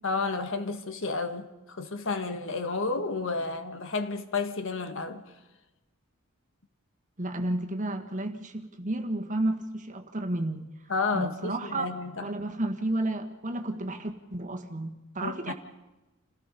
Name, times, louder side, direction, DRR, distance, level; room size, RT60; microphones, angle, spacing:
voice 1, 0.0-5.3 10.9-12.3 15.2-15.5, left 3 dB, 60° left, 1.6 m, -31 dB
voice 2, 7.2-10.7 11.1-11.9 12.2-15.5, right 1 dB, 35° right, 1.8 m, -32 dB
28.5 x 17.5 x 5.4 m
head